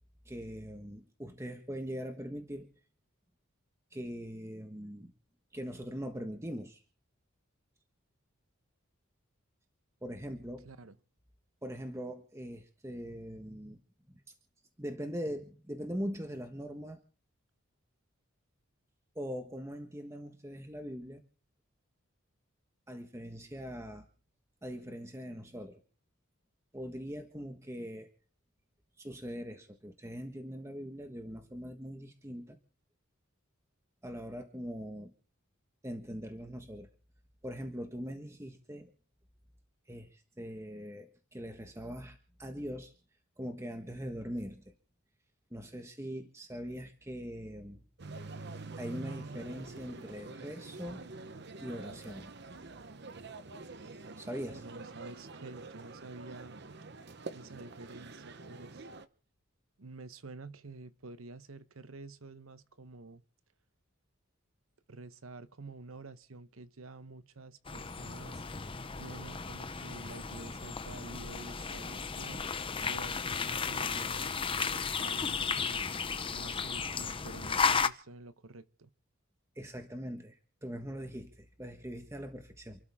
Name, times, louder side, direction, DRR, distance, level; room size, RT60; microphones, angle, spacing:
voice 1, 0.2-2.7 3.9-5.1 5.5-6.8 10.0-10.7 11.6-13.8 14.1-14.2 14.8-17.0 19.1-21.2 22.9-24.0 24.6-25.8 26.7-28.1 29.0-32.6 34.0-35.1 35.8-36.9 37.4-38.9 39.9-42.9 43.4-44.7 45.5-47.8 48.8-51.1 51.6-52.3 54.2-54.6 79.5-82.9, equal, 15° right, 1.4 m, -41 dB
voice 2, 10.6-11.0 54.6-56.6 57.3-58.9 59.8-63.2 64.9-68.5 69.0-72.4 72.8-75.8 76.3-78.9, right 3 dB, 75° right, 1.0 m, -49 dB
sound 1, 48.0-59.1, right 3 dB, 50° right, 1.0 m, -46 dB
sound 2, 67.6-77.9, left 5 dB, 25° left, 0.8 m, -34 dB
sound 3, 68.9-74.4 74.6-76.2, left 1 dB, 65° left, 4.3 m, -63 dB
28.5 x 13.0 x 3.6 m
head